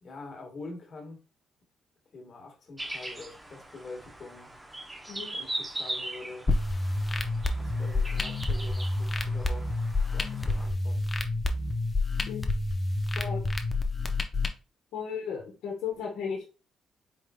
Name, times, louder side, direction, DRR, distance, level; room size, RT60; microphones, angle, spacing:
voice 1, 0.0-1.2 2.1-4.5 5.3-6.5 7.6-9.8 10.1-11.1, left 3 dB, 45° left, 1.4 m, -45 dB
sound 1, 2.8-10.7, right 1 dB, 15° right, 0.7 m, -40 dB
sound 2, 6.5-14.5, left 2 dB, 25° left, 0.6 m, -28 dB
voice 2, 14.9-16.5, left 6 dB, 85° left, 1.0 m, -35 dB
4.5 x 3.6 x 2.2 m
cardioid pair, 90°, 0 cm